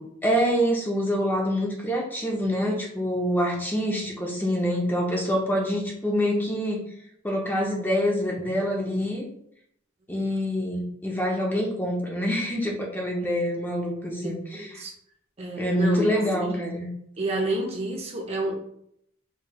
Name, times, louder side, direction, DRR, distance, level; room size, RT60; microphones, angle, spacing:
voice 1, 0.2-6.8 7.2-9.3 10.1-14.7 15.6-16.9, equal, 10° left, 0.6 m, -26 dB
voice 2, 14.2-14.9 15.4-16.1 16.4-16.6 17.2-18.6, right 1 dB, 30° right, 0.6 m, -30 dB
4.7 x 3.1 x 2.3 m
head